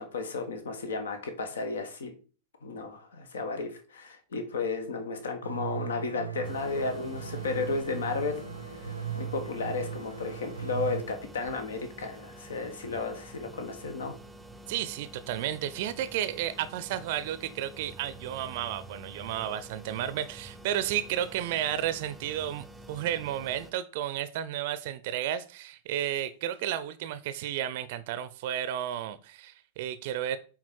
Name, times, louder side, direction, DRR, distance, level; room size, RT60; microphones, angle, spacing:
voice 1, 0.0-2.1 2.6-8.4 8.7-14.1, left 4 dB, 65° left, 1.2 m, -33 dB
sound 1, 5.4-11.0, right 7 dB, 90° right, 0.7 m, -38 dB
sound 2, 6.4-23.7, right 1 dB, 10° right, 0.7 m, -48 dB
voice 2, 14.7-30.4, right 11 dB, 50° right, 0.5 m, -32 dB
8.6 x 3.9 x 4.5 m
figure-of-eight pair, 90°, 0 cm